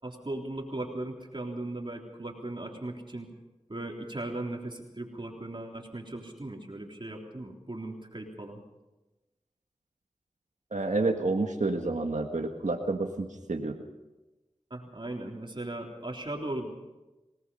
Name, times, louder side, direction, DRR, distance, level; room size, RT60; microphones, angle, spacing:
voice 1, 0.0-3.3 3.7-8.6 14.7-16.7, right 2 dB, 40° right, 0 dB, 3.6 m, -38 dB
voice 2, 10.7-13.8, right 3 dB, 80° right, 2 dB, 1.7 m, -29 dB
25.5 x 19.0 x 5.6 m, 1.1 s
wide cardioid pair, 40°, 12 cm